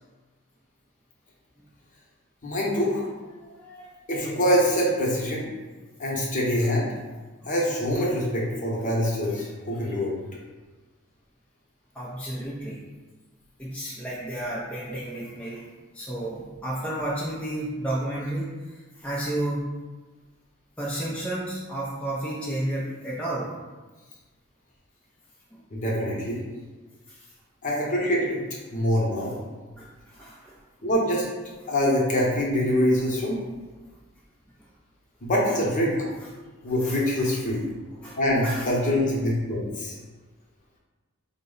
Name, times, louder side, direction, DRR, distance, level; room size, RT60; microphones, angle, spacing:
voice 1, 2.4-3.1 4.1-5.5 6.0-6.9 7.4-10.1 25.7-26.4 27.6-28.4 28.7-29.3 30.8-31.2 31.7-33.4 35.2-35.9 36.6-37.6 38.2-39.9, equal, 35° left, -4 dB, 0.8 m, -24 dB
voice 2, 3.4-4.0 7.4-7.5 11.9-12.8 13.6-15.7 15.9-19.7 20.8-23.5 25.5-25.6 27.1-27.3 29.2-29.3 29.8-30.6 35.5-35.6 36.8-37.3 37.9-38.7, right 1 dB, 5° left, -7 dB, 0.4 m, -32 dB
3.9 x 2.1 x 3.8 m, 1.3 s
head